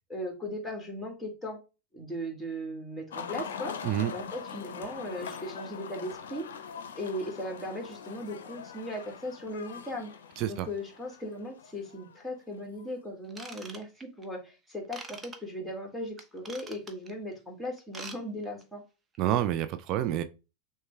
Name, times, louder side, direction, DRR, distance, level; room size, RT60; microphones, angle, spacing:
voice 1, 0.1-1.6 1.9-3.8 4.1-6.4 6.9-10.1 10.5-18.8, left 1 dB, 5° left, 1.9 m, -38 dB
sound 1, 3.1-12.8, left 7 dB, 75° left, 0.5 m, -43 dB
voice 2, 10.4-10.7 19.2-20.2, right 12 dB, 50° right, 0.4 m, -28 dB
Ratchet pawl / Tools, 13.3-14.2 14.9-15.4 16.2-17.1 17.8-18.2 18.4-18.6 19.1-19.2, right 3 dB, 20° right, 0.8 m, -44 dB
6.4 x 2.2 x 3.2 m
hypercardioid pair, 90°, 0 cm